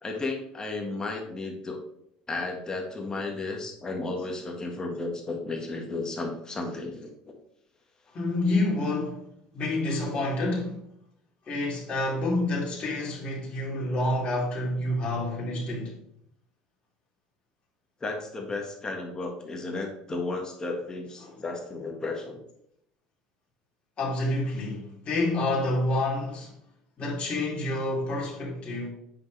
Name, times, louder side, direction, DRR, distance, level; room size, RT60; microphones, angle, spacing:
voice 1, 0.0-1.8 2.3-7.3 18.0-22.4, left 3 dB, 25° left, 1.7 m, -33 dB
voice 2, 8.1-9.2 9.5-10.8 11.5-15.9 21.2-21.4 24.0-26.5 27.0-28.9, left 2 dB, 40° left, 3.0 m, -28 dB
8.5 x 5.8 x 3.4 m
supercardioid pair, 95°, 3 cm